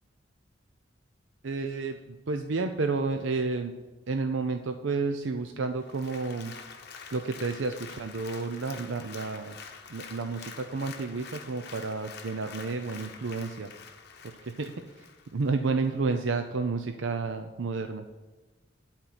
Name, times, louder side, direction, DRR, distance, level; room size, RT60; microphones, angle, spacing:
voice 1, 1.4-3.7 4.1-6.5 7.1-9.6 9.9-13.7 14.4-14.7 15.0-15.1 15.3-18.0, right 4 dB, 90° right, 6 dB, 0.6 m, -31 dB
Applause, 5.8-15.6 16.0-16.1, left 5 dB, 60° left, 1.0 m, -46 dB
11.5 x 4.5 x 8.2 m, 1.2 s
head